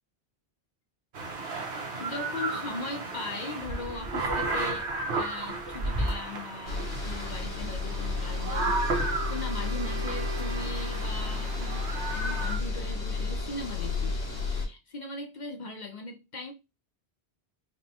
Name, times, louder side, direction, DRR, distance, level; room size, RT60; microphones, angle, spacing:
sound 1, 1.1-12.6, right 3 dB, 80° right, 1.2 m, -33 dB
voice 1, 2.0-14.2 14.6-16.5, left 2 dB, 50° left, 0.6 m, -39 dB
sound 2, 6.7-14.7, left 4 dB, 70° left, 1.7 m, -32 dB
Wind instrument woodwind instrument, 7.8-11.3, right 6 dB, 60° right, 1.2 m, -43 dB
5.2 x 2.2 x 2.8 m
omnidirectional pair, 1.1 m